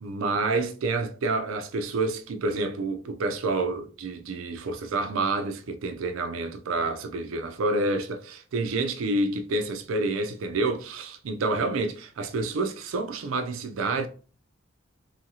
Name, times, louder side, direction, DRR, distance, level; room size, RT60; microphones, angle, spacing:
voice 1, 0.0-14.1, right 3 dB, 85° right, 0.4 m, -28 dB
2.7 x 2.7 x 2.7 m
head